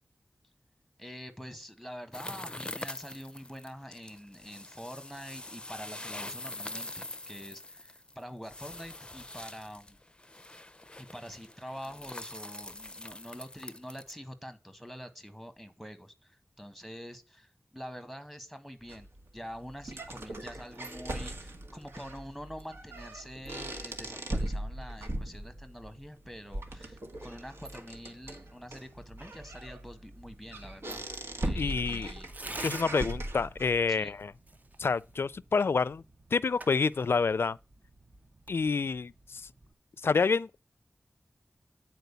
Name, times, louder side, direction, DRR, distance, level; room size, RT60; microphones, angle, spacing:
voice 1, 1.0-10.0 11.0-19.1 19.3-31.0 31.4-32.3 33.9-34.2, equal, ahead, 1.6 m, -46 dB
sound 1, 2.1-14.1, left 1 dB, 25° left, 0.5 m, -44 dB
sound 2, 18.9-33.9, right 1 dB, 80° right, 1.5 m, -39 dB
Tearing, 28.2-39.7, right 2 dB, 40° right, 0.9 m, -50 dB
voice 2, 31.6-32.1 32.6-34.3 34.8-36.0 36.3-37.6 38.5-39.4 40.0-40.6, left 4 dB, 75° left, 0.4 m, -28 dB
9.2 x 4.5 x 6.9 m
wide cardioid pair, 65°, 4 cm